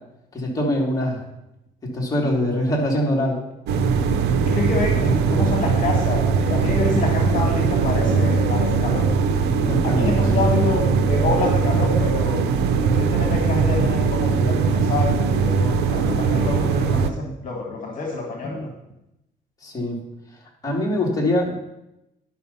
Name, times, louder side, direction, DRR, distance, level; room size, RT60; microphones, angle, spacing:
voice 1, 0.3-1.2 1.8-3.4 9.6-10.4 19.6-20.0 20.6-21.5, left 1 dB, 20° left, -3 dB, 3.0 m, -23 dB
sound 1, 3.7-17.1, right 5 dB, 80° right, 0.8 m, -20 dB
voice 2, 4.4-9.1 9.6-12.4 12.8-18.7, left 3 dB, 50° left, 1 dB, 2.0 m, -27 dB
11.0 x 5.9 x 5.5 m, 0.87 s
cardioid pair, 110°, 17 cm